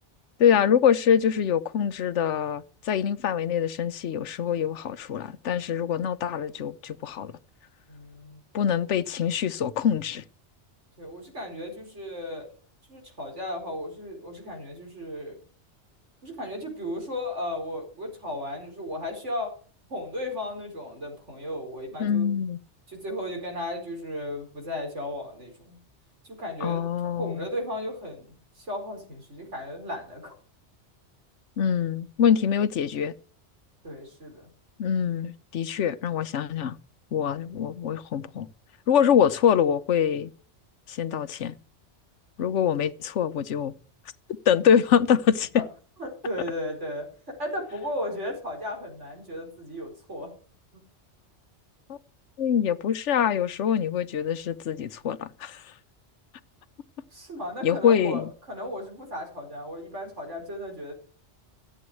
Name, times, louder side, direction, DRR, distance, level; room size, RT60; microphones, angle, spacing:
voice 1, 0.4-7.3 8.5-10.2 22.0-22.6 26.6-27.5 31.6-33.1 34.8-36.8 37.1-38.5 38.9-40.3 40.9-41.5 42.4-43.7 44.5-45.6 51.9-52.0 52.4-55.6 57.6-58.3, left 8 dB, 85° left, 1.1 m, -24 dB
voice 2, 7.9-8.4 11.0-12.5 12.9-15.4 16.2-19.5 19.9-22.3 22.9-25.8 26.2-30.3 33.8-34.5 45.5-45.6 46.0-47.1 47.4-50.3 50.7-50.8 57.1-60.9, left 1 dB, 90° right, 5.0 m, -35 dB
14.0 x 7.9 x 7.9 m
omnidirectional pair, 1.2 m